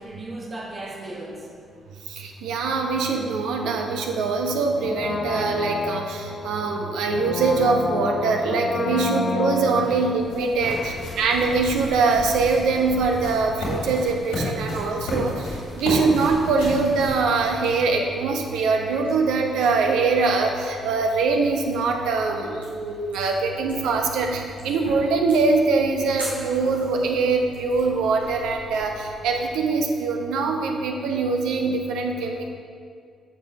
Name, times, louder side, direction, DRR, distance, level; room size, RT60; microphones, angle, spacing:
voice 1, 0.0-1.5 7.0-7.1 9.8-10.1 10.6-11.0 15.2-15.3 26.6-26.8 30.9-31.1, right 1 dB, 35° right, -1 dB, 1.1 m, -38 dB
voice 2, 2.1-15.5 15.7-32.5, right 4 dB, 65° right, 2 dB, 0.8 m, -23 dB
Brass instrument, 4.8-11.6 11.9-12.0, left 3 dB, 45° left, 0.5 m, -30 dB
sound 1, 9.7-18.0, left 1 dB, 75° left, 2.1 m, -33 dB
sound 2, 14.5-29.6, equal, 90° right, 1.1 m, -44 dB
9.7 x 6.9 x 2.9 m, 2.2 s
figure-of-eight pair, 40°, 0 cm